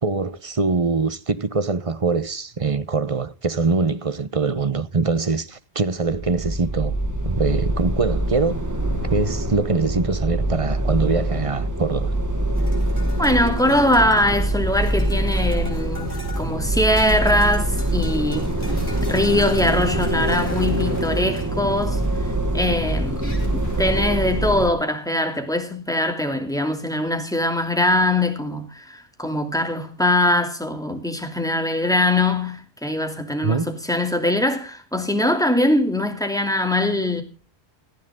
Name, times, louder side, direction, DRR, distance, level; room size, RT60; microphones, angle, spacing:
voice 1, 0.0-6.9 7.2-8.6 9.1-12.1 33.4-33.7, right 4 dB, 35° right, 0.9 m, -23 dB
sound 1, 6.1-24.7, right 1 dB, 15° right, 1.8 m, -24 dB
sound 2, 12.6-23.8, left 2 dB, 75° left, 6.3 m, -43 dB
voice 2, 13.2-18.5 19.0-22.0 22.5-37.2, left 1 dB, 5° left, 2.6 m, -22 dB
18.5 x 12.5 x 3.6 m
omnidirectional pair, 1.1 m